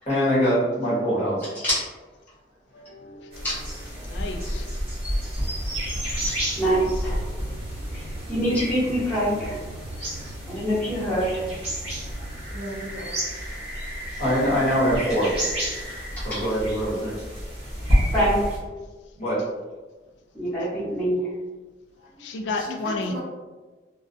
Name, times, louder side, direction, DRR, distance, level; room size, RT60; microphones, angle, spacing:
voice 1, 0.1-1.5 14.2-15.3 16.2-17.1 19.2-19.4, equal, 35° left, -10 dB, 0.9 m, -23 dB
voice 2, 1.5-1.9 3.4-3.6 6.2-7.4 7.9-9.6 10.5-11.5 16.2-16.4 18.1-18.6 20.3-21.4, equal, 10° left, -12 dB, 0.9 m, -25 dB
voice 3, 2.7-4.7 5.9-6.1 19.4-19.5 22.2-23.1, left 3 dB, 75° left, 4 dB, 0.3 m, -33 dB
sound 1, 3.3-18.6, equal, 35° right, 0.9 m, -30 dB
sound 2, 5.3-12.4, right 1 dB, 75° right, 0.8 m, -40 dB
voice 4, 12.5-13.2 15.7-15.9 22.6-23.2, equal, 55° right, -2 dB, 0.4 m, -36 dB
2.3 x 2.2 x 2.5 m, 1.3 s
head